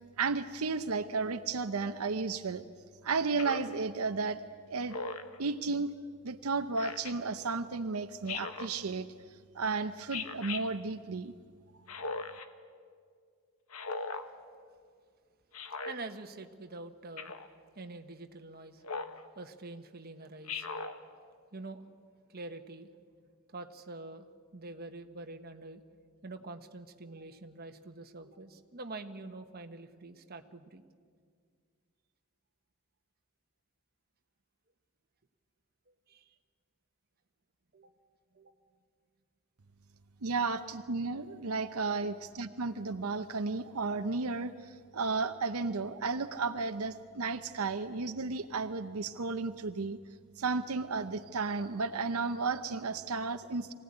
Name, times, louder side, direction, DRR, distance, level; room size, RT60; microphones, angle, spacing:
voice 1, 0.2-2.6 3.0-4.4 4.7-5.0 5.4-5.9 6.2-9.1 9.5-11.3 40.2-50.0 50.4-53.7, right 4 dB, 85° right, 8 dB, 0.8 m, -33 dB
Speech synthesizer, 3.4-3.8 4.9-5.4 6.8-7.1 8.3-8.7 10.1-10.6 11.9-12.5 13.7-14.3 15.5-16.0 17.2-17.5 18.8-19.2 20.5-21.0, left 4 dB, 85° left, 1.3 m, -38 dB
voice 2, 15.9-17.3 17.7-18.8 19.4-20.7 21.5-21.8 22.3-22.9 23.5-24.3 24.5-25.8 26.2-30.8 36.1-36.2 37.7-37.9 38.3-38.5, right 2 dB, 45° right, 6 dB, 1.2 m, -45 dB
23.5 x 16.5 x 9.8 m, 2.1 s
head